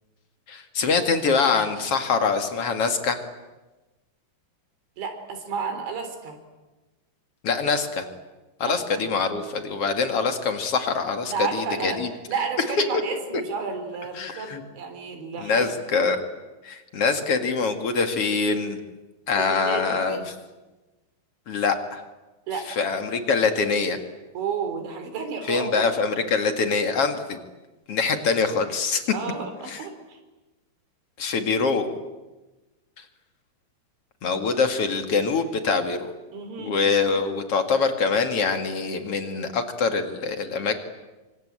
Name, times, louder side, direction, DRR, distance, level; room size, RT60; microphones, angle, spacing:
voice 1, 0.5-3.2 7.4-8.1 8.6-12.1 14.2-14.6 15.4-16.2 16.6-18.8 19.3-20.3 21.5-22.0 22.8-24.0 25.5-27.4 27.9-29.1 29.7-29.8 31.2-31.9 34.2-36.1 36.6-40.8, left 4 dB, 50° left, 7 dB, 1.9 m, -24 dB
voice 2, 5.0-6.4 8.6-9.1 11.3-12.0 12.3-15.7 19.4-20.3 22.5-22.7 24.3-25.9 29.1-30.2 36.3-36.8, right 5 dB, 75° right, 6 dB, 5.9 m, -32 dB
26.5 x 25.5 x 8.8 m, 1.1 s
omnidirectional pair, 5.4 m